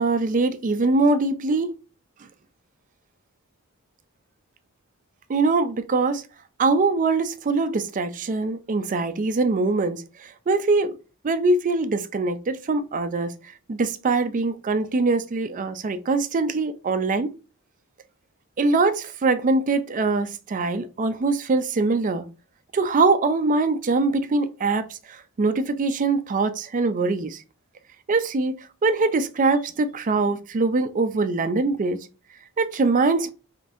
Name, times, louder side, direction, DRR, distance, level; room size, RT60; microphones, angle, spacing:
voice 1, 0.0-1.8 5.3-6.2 6.6-10.9 11.2-13.3 13.7-17.3 18.6-22.2 22.7-27.4 28.1-28.5 28.8-32.0 32.6-33.3, right 3 dB, 35° right, 0.4 m, -23 dB
5.0 x 2.6 x 2.5 m
head